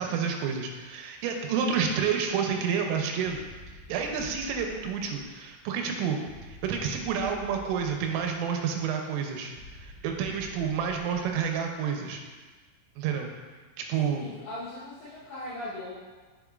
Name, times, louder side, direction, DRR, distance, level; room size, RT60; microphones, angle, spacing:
voice 1, 0.0-3.5 3.7-12.2 13.0-13.3 13.8-14.3, right 6 dB, 85° right, 3 dB, 3.2 m, -29 dB
sound 1, 3.2-5.5 6.3-8.6 9.6-11.8, left 1 dB, 65° right, 3.5 m, -49 dB
voice 2, 14.0-15.9, left 1 dB, 70° left, -11 dB, 2.6 m, -39 dB
7.1 x 6.9 x 2.4 m, 1.3 s
omnidirectional pair, 6.0 m